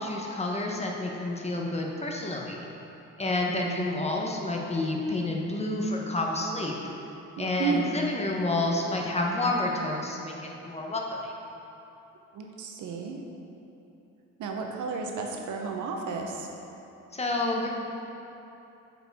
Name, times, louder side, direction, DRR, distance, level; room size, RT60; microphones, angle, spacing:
voice 1, 0.0-2.7 3.2-6.7 7.4-10.3 10.6-11.3 17.1-17.7, left 2 dB, 20° left, -1 dB, 0.9 m, -29 dB
voice 2, 3.5-3.9 7.4-8.0 12.3-13.2 14.4-16.5, right 5 dB, 80° right, 2 dB, 0.8 m, -32 dB
7.8 x 4.8 x 3.5 m, 2.9 s
cardioid pair, 90°, 30 cm